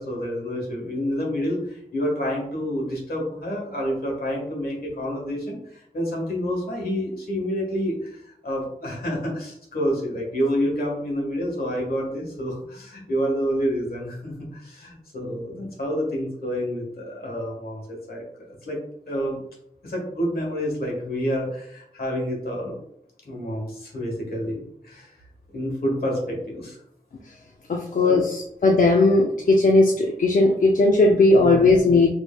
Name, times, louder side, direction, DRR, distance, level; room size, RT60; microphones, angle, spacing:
voice 1, 0.0-18.8 19.1-19.4 19.8-22.8 23.2-25.2 25.5-26.8 28.0-28.2 31.3-31.7, equal, 80° left, -2 dB, 1.4 m, -28 dB
voice 2, 27.7-32.1, left 2 dB, 60° left, 0 dB, 0.5 m, -17 dB
5.2 x 3.1 x 2.2 m, 0.72 s
wide cardioid pair, 90°, 15 cm